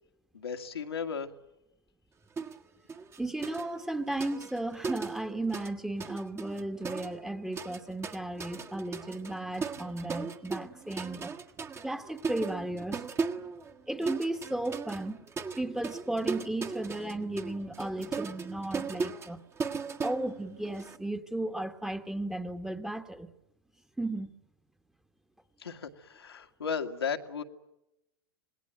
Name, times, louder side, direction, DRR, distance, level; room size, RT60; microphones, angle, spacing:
voice 1, 0.3-1.3 25.6-27.4, left 6 dB, 85° left, 2.1 m, -35 dB
sound 1, 2.4-2.6 2.9-5.7 6.0-21.0, right 5 dB, 20° right, 1.5 m, -38 dB
voice 2, 3.2-11.3 11.8-13.0 13.4-13.5 13.9-15.3 15.6-19.4 20.0-23.3 24.0-24.3, right 2 dB, 5° right, 1.5 m, -35 dB
27.0 x 20.5 x 9.1 m
hypercardioid pair, 100°, 13 cm